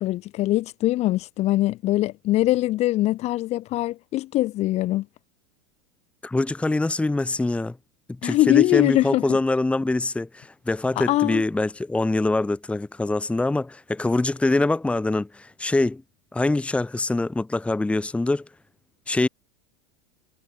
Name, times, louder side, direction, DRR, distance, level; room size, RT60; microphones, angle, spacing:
voice 1, 0.0-5.1 8.2-9.4 11.0-11.4, left 16 dB, 45° left, 2.9 m, -22 dB
voice 2, 6.2-7.8 8.1-16.0 16.3-18.5 19.1-19.3, left 2 dB, 10° left, 1.6 m, -24 dB
hypercardioid pair, 90°, 15 cm